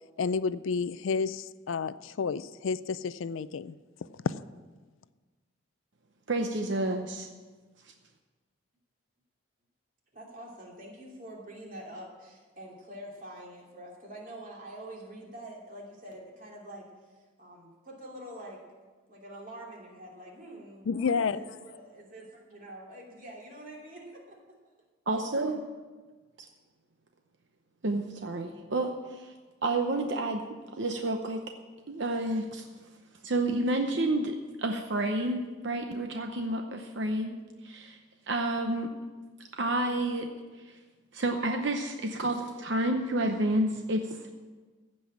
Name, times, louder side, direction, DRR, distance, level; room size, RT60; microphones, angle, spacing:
voice 1, 0.2-3.8 4.2-4.3 20.9-21.4, left 5 dB, 75° left, 16 dB, 0.4 m, -30 dB
voice 2, 6.3-7.3 25.1-25.6 27.8-29.3 29.6-30.4 30.8-31.4 31.9-32.7 33.2-37.4 37.6-38.0 38.3-38.9 39.5-40.3 41.1-44.3, right 1 dB, 60° right, 4 dB, 0.8 m, -30 dB
voice 3, 10.1-18.6 19.1-24.4 25.1-25.2, right 1 dB, 40° right, -2 dB, 2.9 m, -46 dB
15.0 x 5.5 x 8.6 m, 1.3 s
head